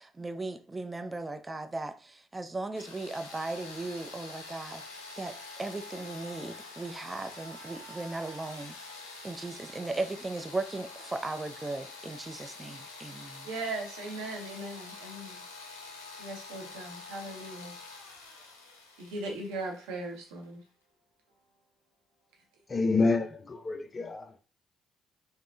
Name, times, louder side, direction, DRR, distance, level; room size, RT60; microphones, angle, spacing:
voice 1, 0.0-4.8 5.2-8.8 9.2-13.5, right 2 dB, 25° right, 0.5 m, -37 dB
sound 1, 2.7-20.5, left 3 dB, 90° left, 0.5 m, -46 dB
voice 2, 13.4-15.4 16.2-17.8 19.0-20.6, right 2 dB, 75° right, 0.8 m, -38 dB
voice 3, 22.7-24.2, left 3 dB, 35° left, 0.4 m, -27 dB
3.5 x 2.1 x 2.6 m
hypercardioid pair, 50°, 0 cm